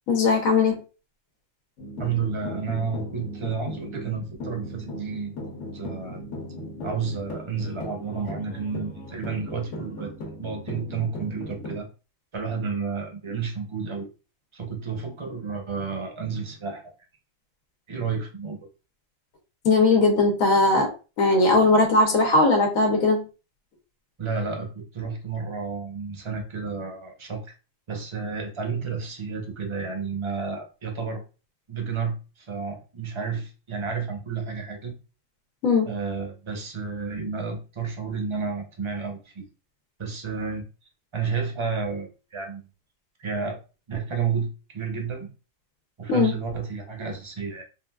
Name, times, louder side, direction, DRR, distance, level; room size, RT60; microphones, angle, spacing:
voice 1, 0.1-0.8 19.6-20.9 21.2-23.2 35.6-35.9 46.1-46.3, left 3 dB, 90° left, 2 dB, 1.2 m, -19 dB
sound 1, 1.8-11.8, equal, 65° left, 1.2 m, -37 dB
voice 2, 2.0-5.4 5.7-6.2 6.8-10.1 10.4-11.9 12.3-14.1 14.5-16.9 17.9-18.6 24.2-27.5 27.9-31.2 31.7-34.9 35.8-39.5 40.0-40.6 41.1-42.7 43.2-43.6 43.9-45.3 46.0-47.6, right 5 dB, 30° right, 2 dB, 0.5 m, -31 dB
3.7 x 2.4 x 2.3 m, 0.33 s
omnidirectional pair, 1.4 m